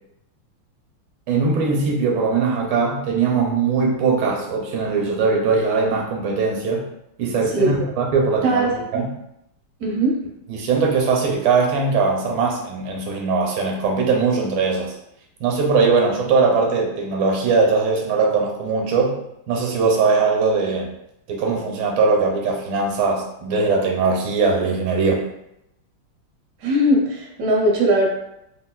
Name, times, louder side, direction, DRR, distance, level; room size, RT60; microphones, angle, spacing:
voice 1, 1.3-6.9 7.2-8.6 8.9-9.1 10.5-14.9 15.4-19.2 19.5-20.9 21.3-25.2, right 4 dB, 80° right, 0 dB, 1.4 m, -20 dB
voice 2, 8.4-9.0 9.8-10.2 26.6-28.1, right 1 dB, 65° right, -3 dB, 0.8 m, -19 dB
3.7 x 2.4 x 2.3 m, 0.80 s
omnidirectional pair, 2.3 m